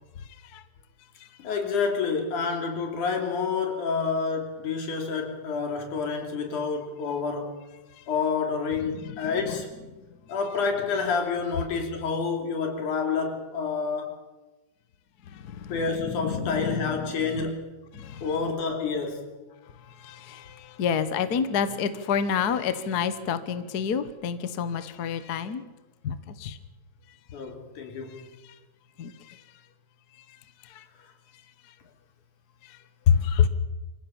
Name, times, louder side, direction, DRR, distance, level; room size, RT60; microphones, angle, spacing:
voice 1, 1.4-7.6 8.1-9.7 10.3-14.2 15.7-17.8 18.2-19.3 27.3-28.3, left 5 dB, 75° left, 4.4 m, -28 dB
voice 2, 16.2-16.9 17.9-18.2 20.0-20.4 20.8-25.6 26.0-26.1 26.4-26.6 29.0-29.1 33.1-33.5, left 7 dB, 60° left, 1.0 m, -26 dB
25.5 x 15.5 x 7.1 m
omnidirectional pair, 3.5 m